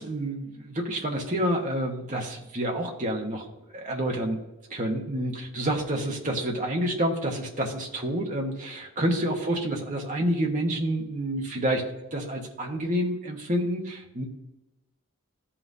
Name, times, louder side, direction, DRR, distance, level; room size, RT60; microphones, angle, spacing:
voice 1, 0.0-4.4 4.7-14.2, right 1 dB, 35° right, 0 dB, 1.3 m, -28 dB
14.5 x 5.7 x 2.8 m, 0.99 s
head